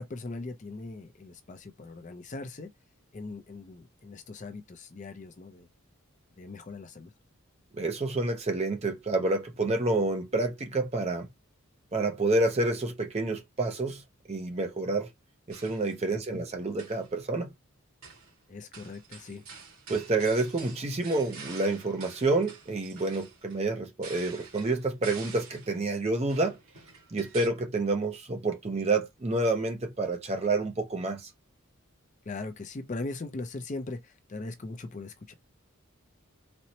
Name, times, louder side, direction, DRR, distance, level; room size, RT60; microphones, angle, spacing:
voice 1, 0.0-2.7 3.1-5.7 6.4-7.1 16.1-16.4 18.5-19.4 32.3-35.3, left 3 dB, 35° left, 0.4 m, -40 dB
voice 2, 7.7-11.3 11.9-14.0 14.3-15.1 15.5-17.5 19.9-26.6 27.1-31.3, right 2 dB, 30° right, 0.5 m, -28 dB
sound 1, 15.5-16.0 16.6-17.1 18.0-18.4 18.7-25.8 26.3-27.5, right 5 dB, 75° right, 1.9 m, -48 dB
4.2 x 2.1 x 2.7 m
head